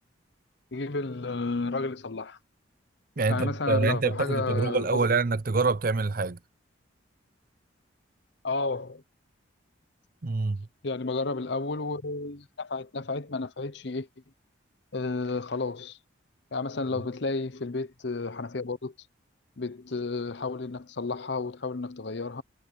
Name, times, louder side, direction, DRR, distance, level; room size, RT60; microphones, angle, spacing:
voice 1, 0.7-2.4 3.3-5.1 8.4-9.0 10.8-14.1 14.9-16.0 16.5-18.9 19.6-22.4, left 3 dB, 55° left, 0.8 m, -32 dB
voice 2, 3.2-6.4 10.2-10.7, right 3 dB, 45° right, 0.6 m, -26 dB
head